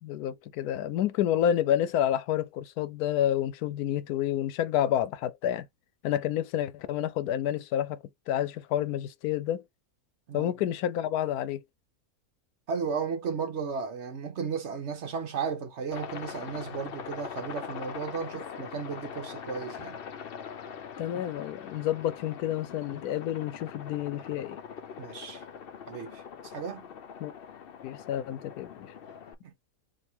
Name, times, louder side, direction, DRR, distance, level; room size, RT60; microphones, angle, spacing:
voice 1, 0.0-5.7 6.0-9.6 10.3-11.6 21.0-24.6 27.2-27.3 27.8-28.9, left 11 dB, 90° left, 1.1 m, -29 dB
voice 2, 12.7-20.0 25.0-25.4 25.9-26.9 29.4-29.5, right 6 dB, 55° right, 1.0 m, -34 dB
Aircraft, 15.9-29.3, left 7 dB, 65° left, 0.6 m, -42 dB
3.4 x 2.7 x 4.3 m
omnidirectional pair, 1.6 m